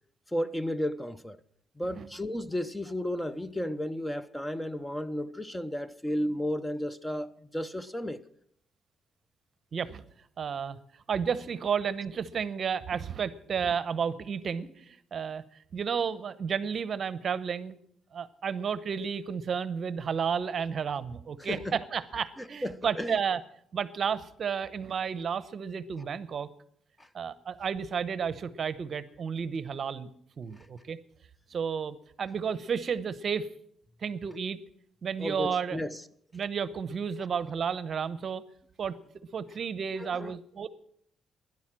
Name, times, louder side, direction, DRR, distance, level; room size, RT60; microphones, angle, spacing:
voice 1, 0.3-1.4 1.8-8.2 21.4-21.8 22.4-23.2 27.0-27.1 30.6-30.7 35.2-36.0 40.0-40.4, equal, 10° left, 0.6 m, -33 dB
voice 2, 10.4-10.8 11.1-15.4 15.7-17.8 18.1-21.6 21.9-23.4 23.7-26.5 27.1-30.1 30.4-31.0 31.5-33.5 34.0-34.6 35.0-35.8 36.3-38.4 38.8-38.9 39.3-40.7, right 6 dB, 50° right, 0.8 m, -32 dB
12.0 x 10.5 x 7.5 m
cardioid pair, 90°, 0 cm